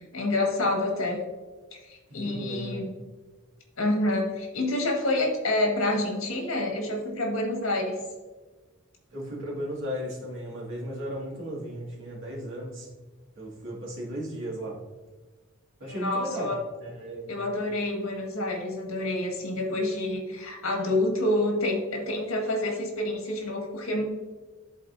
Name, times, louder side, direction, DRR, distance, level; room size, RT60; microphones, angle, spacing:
voice 1, 0.1-1.2 1.7-2.9 3.8-8.0 15.9-16.6 17.3-24.0, left 1 dB, 75° left, 1 dB, 1.7 m, -28 dB
voice 2, 2.1-2.9 9.1-12.9 13.4-14.8 15.8-16.5 16.8-17.4, equal, 65° right, -3 dB, 2.1 m, -35 dB
12.5 x 4.1 x 2.6 m, 1.3 s
head